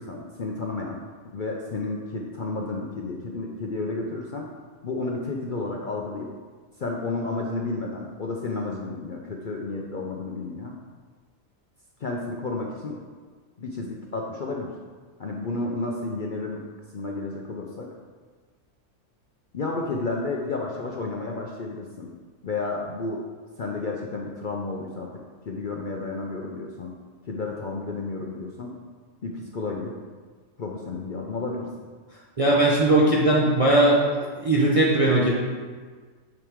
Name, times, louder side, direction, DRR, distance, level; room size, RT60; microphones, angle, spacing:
voice 1, 0.0-4.5 4.8-6.3 6.8-10.8 12.0-13.0 13.6-14.7 15.2-16.6 16.9-17.9 19.5-22.1 22.4-23.2 23.6-27.0 27.3-28.7 29.2-30.0 30.6-31.7, left 3 dB, 50° left, -1 dB, 0.6 m, -31 dB
voice 2, 32.4-34.0 34.4-35.4, right 1 dB, 30° right, -5 dB, 0.9 m, -19 dB
9.1 x 4.8 x 3.6 m, 1.5 s
omnidirectional pair, 1.5 m